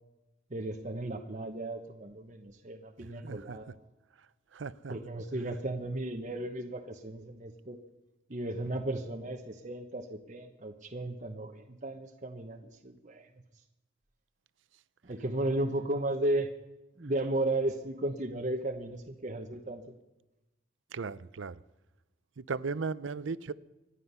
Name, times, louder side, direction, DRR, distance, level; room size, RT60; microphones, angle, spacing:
voice 1, 0.5-3.7 4.9-7.8 8.3-13.3 15.0-16.5 17.0-19.8, right 1 dB, 40° right, 1.0 m, -35 dB
voice 2, 3.2-3.6 4.5-4.9 20.9-21.6 22.4-23.5, right 4 dB, 85° right, 0.6 m, -36 dB
25.0 x 9.9 x 5.6 m
head